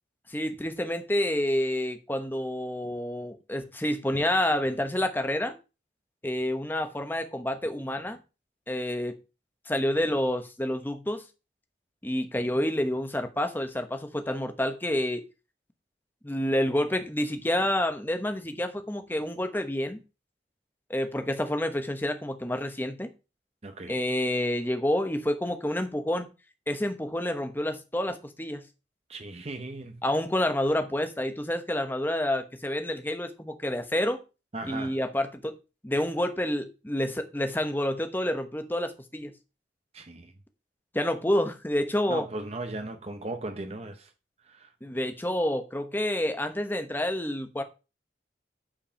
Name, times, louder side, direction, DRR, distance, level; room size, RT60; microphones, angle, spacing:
voice 1, 0.3-5.6 6.2-8.2 8.7-9.2 9.7-11.2 12.0-15.2 16.2-20.0 20.9-23.1 23.9-26.3 26.7-28.6 30.0-34.2 34.6-35.6 35.8-39.3 40.9-42.3 44.8-47.6, left 1 dB, 10° left, 1.1 m, -28 dB
voice 2, 23.6-24.0 29.1-30.0 34.5-35.0 39.9-40.3 42.1-44.1 44.4-44.7, right 2 dB, 35° right, 0.8 m, -37 dB
8.8 x 4.7 x 5.7 m
head